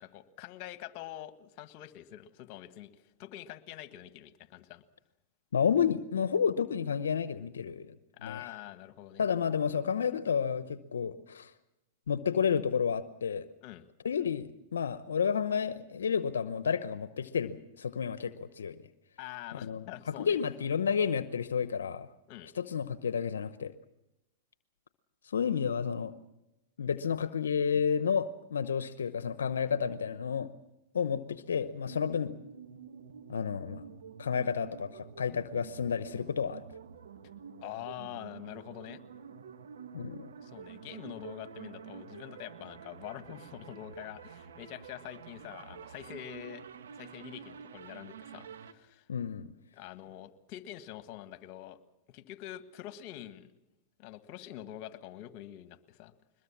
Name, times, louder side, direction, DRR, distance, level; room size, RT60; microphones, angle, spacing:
voice 1, 0.0-4.8 8.1-9.2 13.6-13.8 19.2-20.4 22.3-22.5 37.6-39.0 40.4-46.6 46.9-49.0 49.7-51.8 52.1-53.5 54.0-56.1, left 13 dB, 50° left, 11 dB, 1.6 m, -45 dB
voice 2, 5.5-8.0 8.2-8.5 9.2-11.5 12.1-13.5 14.0-18.8 19.6-22.1 22.5-23.7 25.2-26.1 26.8-30.5 30.9-32.3 33.3-33.8 34.2-36.6 39.9-40.3 49.1-49.5, left 7 dB, 85° left, 13 dB, 0.8 m, -31 dB
sound 1, 31.8-48.7, right 7 dB, 80° right, 1.5 m, -48 dB
22.0 x 21.0 x 7.3 m, 0.94 s
hypercardioid pair, 115°, 0 cm